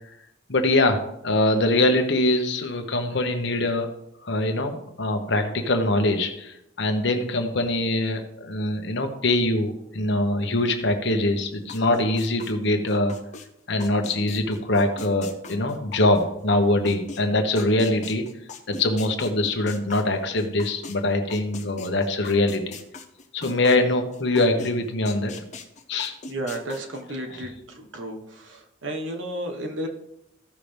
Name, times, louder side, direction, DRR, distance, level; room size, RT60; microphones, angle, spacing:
voice 1, 0.5-3.9 4.2-13.2 13.7-18.3 18.7-22.8 23.3-25.3 25.9-26.1 27.3-27.5, left 2 dB, 60° left, 5 dB, 1.2 m, -23 dB
sound 1, 11.7-13.5 13.8-21.0 21.3-24.7 25.1-27.0, left 4 dB, 35° left, 0.8 m, -40 dB
voice 2, 26.3-28.2 28.4-29.9, right 1 dB, 70° right, 3 dB, 1.4 m, -32 dB
14.5 x 5.9 x 3.4 m, 0.82 s
head